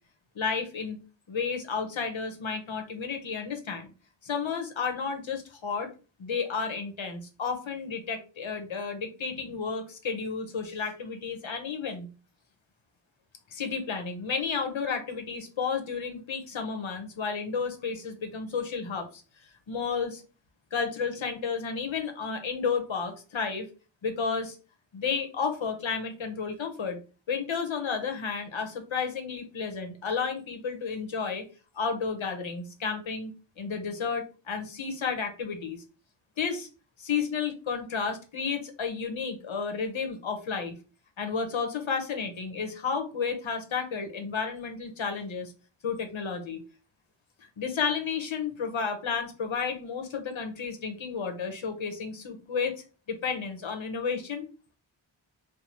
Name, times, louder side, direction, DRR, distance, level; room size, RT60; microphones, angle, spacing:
voice 1, 0.3-1.0 1.3-3.9 4.2-5.9 6.2-12.1 13.5-19.2 19.7-20.2 20.7-23.7 24.0-24.6 24.9-27.0 27.3-31.4 31.7-35.8 36.4-36.7 37.0-40.8 41.2-45.5 45.8-46.6 47.4-52.7 53.1-54.5, left 5 dB, 70° left, 5 dB, 0.9 m, -32 dB
4.6 x 2.0 x 2.9 m, 0.34 s
wide cardioid pair, 65°, 49 cm